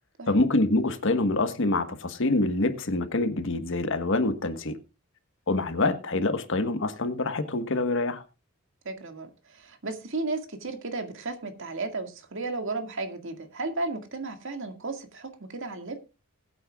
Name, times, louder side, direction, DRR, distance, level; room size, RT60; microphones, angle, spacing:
voice 1, 0.3-4.8 5.5-8.2, left 2 dB, 65° left, 1.4 m, -26 dB
voice 2, 8.9-16.0, right 3 dB, 65° right, 2.0 m, -34 dB
20.5 x 9.0 x 2.4 m
head